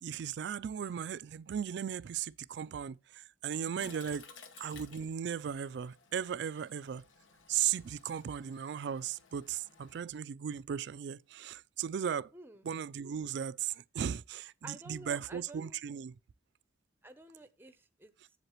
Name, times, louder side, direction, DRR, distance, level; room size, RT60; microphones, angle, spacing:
voice 1, 0.0-4.3 4.6-7.0 7.5-12.3 12.6-16.1, right 8 dB, 60° right, 0.3 m, -36 dB
Toilet flush, 3.8-10.0, left 5 dB, 85° left, 1.1 m, -57 dB
voice 2, 12.3-12.6 14.6-15.8 17.0-18.1, right 2 dB, 10° right, 0.6 m, -51 dB
8.0 x 7.3 x 2.9 m
head